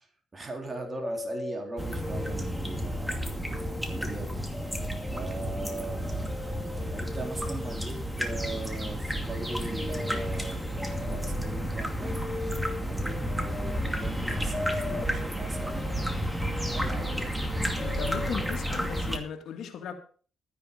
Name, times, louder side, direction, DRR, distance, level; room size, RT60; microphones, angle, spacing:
voice 1, 0.0-4.4 5.1-6.2 6.8-12.2 12.8-15.9 16.7-17.3, right 2 dB, 25° right, 4.1 m, -40 dB
sound 1, 0.7-3.0 3.3-19.0, left 2 dB, 25° left, 1.5 m, -41 dB
sound 2, 1.8-19.2, equal, ahead, 2.4 m, -32 dB
voice 2, 17.8-19.9, left 7 dB, 70° left, 2.8 m, -37 dB
13.0 x 10.0 x 5.4 m
cardioid pair, 90°, 0 cm